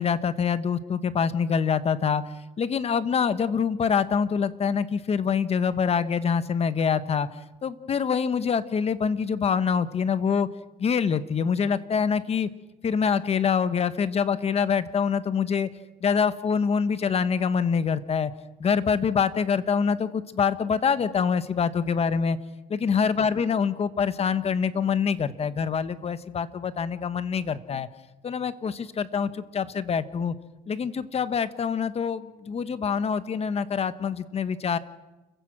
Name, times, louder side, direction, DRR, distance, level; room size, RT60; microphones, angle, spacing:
voice 1, 0.0-2.2 2.6-7.3 7.6-10.5 10.8-12.5 12.8-15.7 16.0-18.3 18.6-22.4 22.7-27.9 28.2-30.4 30.7-34.8, left 6 dB, 35° left, 14 dB, 1.2 m, -25 dB
29.5 x 16.0 x 6.2 m, 1.1 s
cardioid pair, 110°, 17 cm